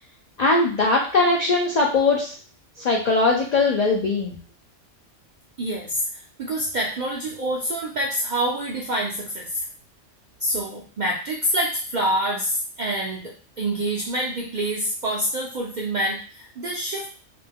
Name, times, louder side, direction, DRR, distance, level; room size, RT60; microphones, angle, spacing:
voice 1, 0.4-2.3 2.8-4.4, left 3 dB, 65° left, -1 dB, 0.4 m, -20 dB
voice 2, 5.6-9.7 10.4-17.1, right 1 dB, 65° right, -2 dB, 0.4 m, -26 dB
2.5 x 2.2 x 3.4 m, 0.39 s
omnidirectional pair, 1.3 m